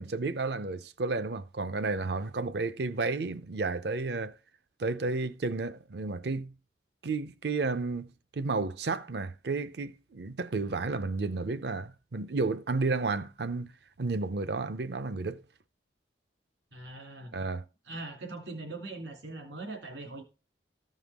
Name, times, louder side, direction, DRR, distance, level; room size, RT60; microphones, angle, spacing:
voice 1, 0.0-4.3 4.8-6.5 7.0-13.7 14.0-15.4 17.3-17.6, right 3 dB, 60° right, 0.6 m, -32 dB
voice 2, 16.7-17.4 17.9-20.2, right 2 dB, 75° right, 2.6 m, -41 dB
14.5 x 5.6 x 3.5 m
head